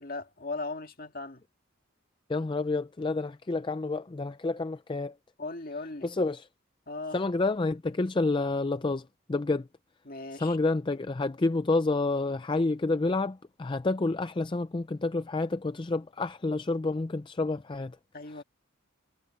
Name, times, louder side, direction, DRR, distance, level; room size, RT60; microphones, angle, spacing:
voice 1, 0.0-1.4 5.4-6.1 6.9-7.2 10.1-10.6 18.1-18.4, left 3 dB, 45° left, 2.1 m, -38 dB
voice 2, 2.3-5.2 6.0-6.5 7.1-9.7 10.3-18.0 18.3-18.4, left 3 dB, 25° left, 0.4 m, -29 dB
head